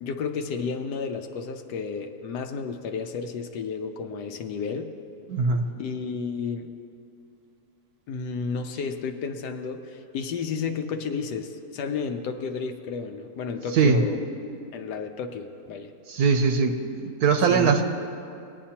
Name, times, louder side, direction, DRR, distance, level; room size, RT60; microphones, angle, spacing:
voice 1, 0.0-4.9 5.8-6.7 8.1-14.2 14.7-15.9 17.4-17.8, left 5 dB, 85° left, 5 dB, 1.2 m, -32 dB
voice 2, 5.3-5.6 13.7-14.0 16.1-17.8, right 5 dB, 75° right, 6 dB, 1.1 m, -21 dB
19.0 x 9.3 x 2.9 m, 2.5 s
omnidirectional pair, 1.8 m